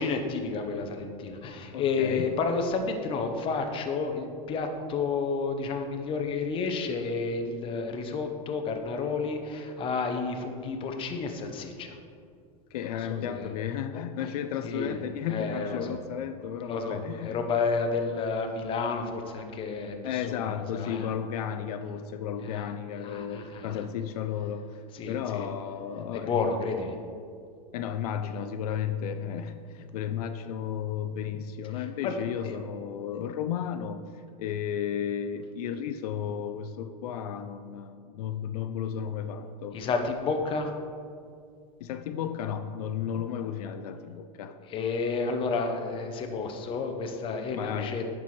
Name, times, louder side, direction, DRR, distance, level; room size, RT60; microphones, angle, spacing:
voice 1, 0.0-12.0 13.1-13.5 14.6-15.0 15.3-15.9 16.7-20.4 20.7-21.1 22.4-22.7 23.0-23.8 24.9-25.5 26.1-27.0 31.7-32.1 32.4-32.6 39.7-40.7 44.7-48.0, left 4 dB, 25° left, 4 dB, 0.7 m, -31 dB
voice 2, 1.7-2.3 12.7-17.4 20.0-24.7 25.1-26.4 27.7-34.0 34.4-39.8 41.8-44.6 47.5-48.0, left 8 dB, 75° left, 9 dB, 0.5 m, -33 dB
9.1 x 6.1 x 3.2 m, 2.3 s
supercardioid pair, 145°, 19 cm